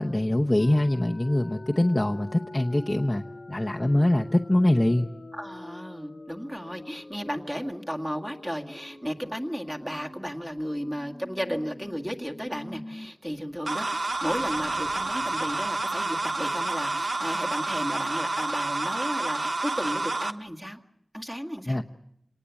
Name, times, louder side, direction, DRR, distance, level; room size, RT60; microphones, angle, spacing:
voice 1, 0.0-5.1 21.7-21.8, left 1 dB, 25° left, 1 dB, 0.9 m, -23 dB
sound 1, 0.6-13.1 13.4-13.5 13.9-16.6, left 2 dB, 55° left, 1.2 m, -45 dB
voice 2, 5.3-20.8 21.1-21.8, equal, 10° right, 2 dB, 1.9 m, -34 dB
sound 2, 13.7-20.3, right 2 dB, 60° right, 1.0 m, -29 dB
27.0 x 19.0 x 8.3 m, 0.77 s
wide cardioid pair, 65°, 0 cm